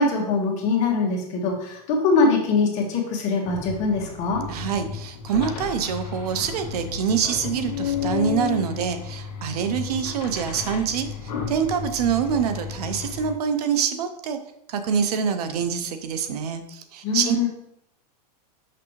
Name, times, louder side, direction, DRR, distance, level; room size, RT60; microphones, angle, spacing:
voice 1, 0.0-4.4 17.0-17.5, left 3 dB, 35° left, 0 dB, 1.5 m, -22 dB
sound 1, 3.4-13.3, left 7 dB, 85° left, 1.7 m, -32 dB
voice 2, 4.5-14.4 14.7-17.4, right 7 dB, 75° right, 9 dB, 0.8 m, -25 dB
6.0 x 5.9 x 3.1 m, 0.78 s
supercardioid pair, 160°, 20 cm